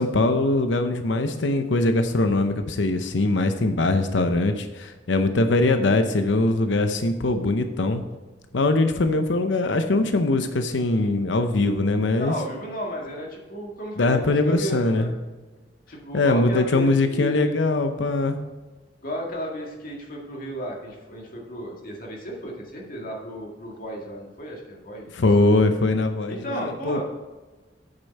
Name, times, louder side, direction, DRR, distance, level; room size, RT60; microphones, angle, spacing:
voice 1, 0.0-8.0 8.5-12.3 14.0-15.1 16.1-18.4 25.1-27.0, left 2 dB, 85° left, 7 dB, 0.7 m, -22 dB
voice 2, 12.2-15.1 15.9-17.6 19.0-25.2 26.3-27.0, equal, 50° left, -1 dB, 2.0 m, -33 dB
9.0 x 6.9 x 4.1 m, 1.3 s
head